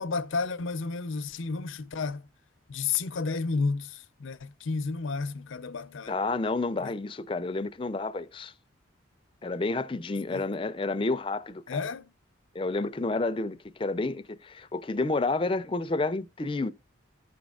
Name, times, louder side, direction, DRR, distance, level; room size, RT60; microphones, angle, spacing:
voice 1, 0.0-2.3 2.7-6.2 6.8-6.9 10.3-10.4 11.7-12.1, left 4 dB, 80° left, 0.6 m, -31 dB
voice 2, 6.1-8.5 9.4-11.8 12.5-16.7, left 3 dB, 25° left, 0.4 m, -30 dB
14.5 x 5.2 x 2.3 m
head